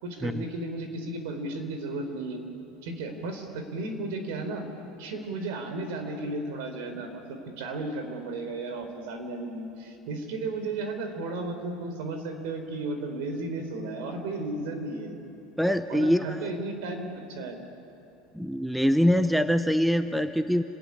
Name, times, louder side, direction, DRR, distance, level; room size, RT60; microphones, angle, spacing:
voice 1, 0.0-2.4 2.8-4.6 5.0-15.2 15.9-17.6, right 2 dB, 65° right, 6 dB, 4.2 m, -34 dB
voice 2, 15.6-16.5 18.3-20.6, equal, ahead, 10 dB, 0.6 m, -24 dB
28.5 x 20.0 x 9.9 m, 2.9 s
cardioid pair, 175°, 0 cm